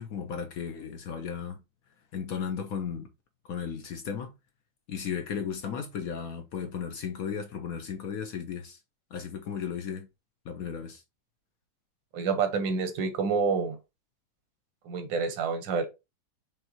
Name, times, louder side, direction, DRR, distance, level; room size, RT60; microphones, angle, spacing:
voice 1, 0.0-1.6 2.1-3.1 3.4-4.3 4.9-8.8 9.1-10.1 10.4-11.0, left 7 dB, 65° left, 0.9 m, -35 dB
voice 2, 12.1-13.8 14.8-15.9, right 5 dB, 80° right, 1.6 m, -28 dB
5.4 x 3.3 x 2.8 m
omnidirectional pair, 2.0 m